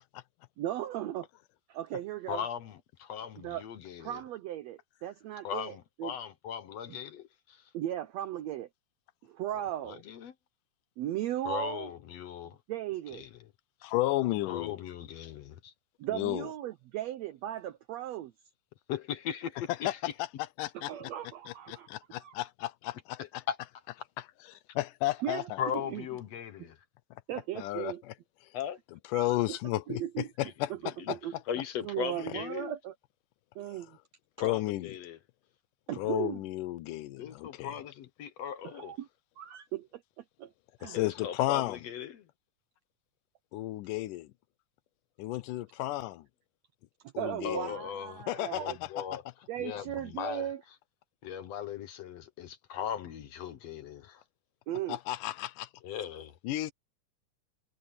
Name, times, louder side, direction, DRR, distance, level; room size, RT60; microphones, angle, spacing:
voice 1, 0.6-1.3 1.7-2.4 3.4-3.6 4.0-6.1 7.7-8.7 9.2-10.0 11.0-11.9 12.7-13.3 16.0-18.3 20.7-21.9 22.2-22.3 25.2-25.5 25.9-26.0 27.3-28.0 29.1-29.6 29.9-30.3 30.7-30.8 31.1-31.3 31.8-32.9 33.5-34.0 35.9-36.4 38.7-39.1 39.4-40.5 40.8-41.0 47.2-48.8 49.5-50.6 54.7-55.0, right 12 dB, 80° right, 1.5 m, -37 dB
voice 2, 2.3-4.2 5.4-7.7 9.8-10.3 11.5-12.6 13.1-13.5 14.5-15.7 18.9-20.0 23.2-23.6 25.6-26.8 28.5-28.8 30.4-30.5 31.0-31.2 31.5-32.7 34.4-35.2 37.2-39.0 40.9-42.3 47.4-48.2 48.5-49.2 49.6-50.5 51.2-54.2 55.8-56.3, left 8 dB, 65° left, 1.9 m, -38 dB
voice 3, 13.8-14.8 16.1-16.5 19.8-19.9 20.6-20.9 21.5-23.4 24.8-25.6 27.6-28.1 29.1-31.2 33.7-33.8 34.4-34.9 35.9-37.7 40.8-41.8 43.5-44.3 45.2-46.3 47.1-47.8 48.3-48.9 54.9-55.7 56.4-56.7, left 16 dB, 80° left, 2.2 m, -33 dB
omnidirectional pair, 3.8 m